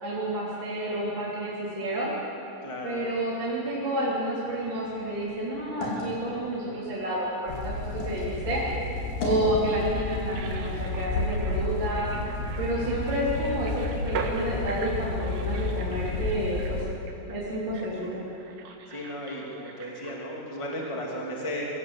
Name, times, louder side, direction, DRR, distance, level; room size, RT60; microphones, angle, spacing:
voice 1, 0.0-2.1 2.8-7.8 8.0-8.6 9.2-12.1 12.6-16.8 17.3-18.2, right 1 dB, 30° right, -7 dB, 3.7 m, -30 dB
voice 2, 2.6-3.0 18.9-21.7, equal, 10° left, -2 dB, 2.0 m, -35 dB
sound 1, 4.4-8.3 8.7-9.5, left 2 dB, 60° left, 5.4 m, -38 dB
sound 2, 7.5-16.8, left 2 dB, 85° left, 3.8 m, -32 dB
sound 3, 10.2-20.7 21.0-21.1, right 4 dB, 70° right, 3.7 m, -41 dB
24.5 x 16.5 x 8.0 m, 2.8 s
omnidirectional pair, 4.8 m